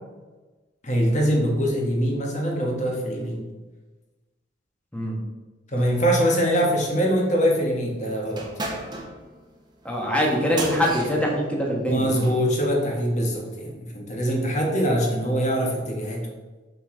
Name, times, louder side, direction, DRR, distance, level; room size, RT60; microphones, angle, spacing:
voice 1, 0.8-3.4 5.7-8.5 11.9-16.3, equal, 40° left, 0 dB, 1.4 m, -23 dB
sound 1, 8.3-12.4, right 2 dB, 25° right, 1.0 m, -35 dB
voice 2, 9.8-12.2, equal, 5° left, -2 dB, 1.3 m, -23 dB
6.0 x 5.5 x 3.8 m, 1.2 s
head